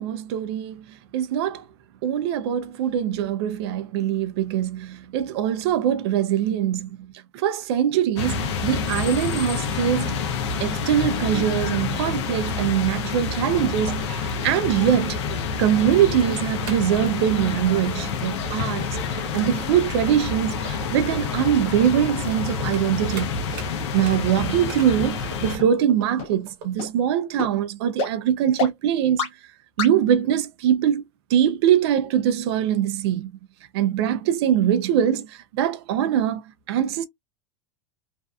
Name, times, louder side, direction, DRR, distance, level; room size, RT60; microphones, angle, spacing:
voice 1, 0.0-1.6 2.0-10.2 10.6-15.2 15.6-23.3 23.9-29.3 29.8-31.0 31.3-33.3 33.7-36.4 36.7-37.0, right 10 dB, 60° right, 0.4 m, -23 dB
sound 1, 8.2-25.6, left 6 dB, 70° left, 0.6 m, -28 dB
sound 2, 16.1-26.7, right 5 dB, 45° right, 1.1 m, -42 dB
sound 3, 23.2-23.3 23.8-23.9 24.4-24.5 25.0-25.1 25.6-25.7 26.2-26.3 26.8-26.9 27.4-27.5 28.0-28.1 28.6-28.7 29.2-29.3 29.8-29.9, left 5 dB, 40° left, 0.9 m, -27 dB
2.5 x 2.2 x 2.3 m
supercardioid pair, 155°, 15 cm